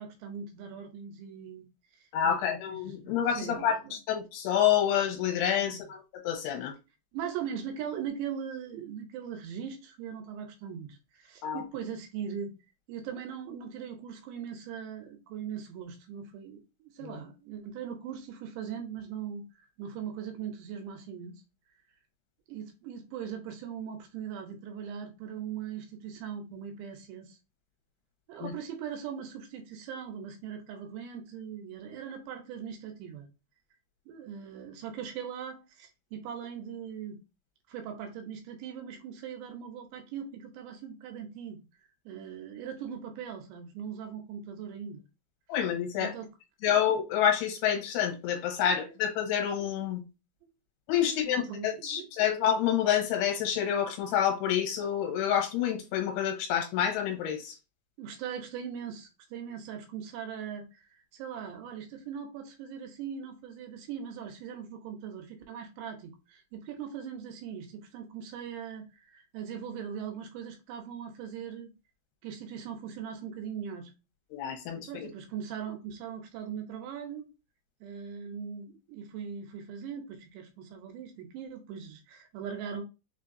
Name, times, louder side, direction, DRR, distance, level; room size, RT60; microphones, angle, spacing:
voice 1, 0.0-1.7 1.9-4.0 5.6-5.8 7.1-12.6 12.9-21.4 22.5-27.4 28.3-33.3 34.1-37.2 37.7-41.6 42.1-45.0 46.0-46.3 46.7-46.8 48.7-48.8 51.0-52.1 58.0-71.7 72.2-73.9 74.8-77.3 77.8-82.8, right 8 dB, 80° right, 2.9 m, -40 dB
voice 2, 2.1-3.8 4.1-6.7 11.4-11.6 17.0-17.2 28.4-28.5 45.5-46.1 46.6-50.0 50.9-57.6 74.3-75.1, left 9 dB, 75° left, 2.9 m, -28 dB
6.3 x 2.7 x 2.5 m
omnidirectional pair, 5.0 m